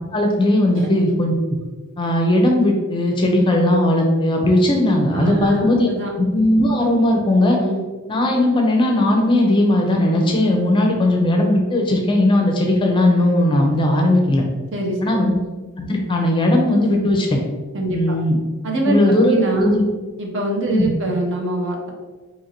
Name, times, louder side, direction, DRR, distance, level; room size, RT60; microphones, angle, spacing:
voice 1, 0.1-1.3 2.0-7.6 8.1-14.4 15.0-15.3 15.8-17.4 17.9-18.3 18.8-19.8 20.7-21.0, left 1 dB, 20° left, 1 dB, 0.5 m, -17 dB
voice 2, 5.1-6.1 7.5-7.8 14.7-15.3 17.7-18.2 18.6-19.0 19.3-19.7 20.2-21.9, right 2 dB, 55° right, 0 dB, 0.7 m, -24 dB
2.8 x 2.6 x 4.2 m, 1.3 s
head